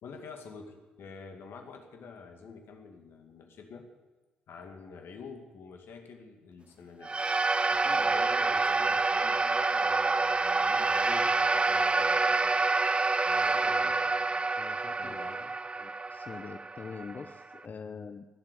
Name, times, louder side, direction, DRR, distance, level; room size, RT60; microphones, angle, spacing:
voice 1, 0.0-3.9 4.5-7.1 7.7-12.6 13.3-14.5 15.0-15.5, left 5 dB, 60° left, 4 dB, 2.2 m, -48 dB
sound 1, 7.0-17.6, right 3 dB, 25° right, 0.5 m, -27 dB
voice 2, 14.6-15.2 15.8-18.3, left 5 dB, 40° left, 9 dB, 0.7 m, -44 dB
17.0 x 7.7 x 9.7 m, 1.2 s
hypercardioid pair, 45°, 4 cm